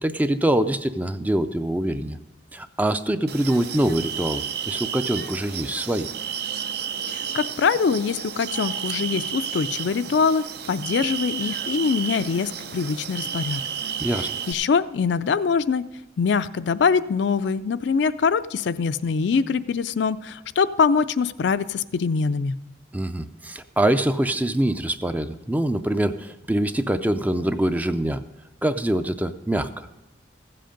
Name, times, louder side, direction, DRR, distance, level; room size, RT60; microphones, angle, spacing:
voice 1, 0.0-2.2 2.5-6.1 14.0-14.3 22.9-28.2 28.6-29.9, right 1 dB, 10° right, 10 dB, 0.4 m, -24 dB
sound 1, 3.3-14.5, right 8 dB, 60° right, 0.5 m, -32 dB
voice 2, 7.1-13.6 14.5-15.8 16.2-22.6, left 5 dB, 65° left, 13 dB, 0.4 m, -23 dB
15.0 x 7.7 x 5.1 m, 0.96 s
head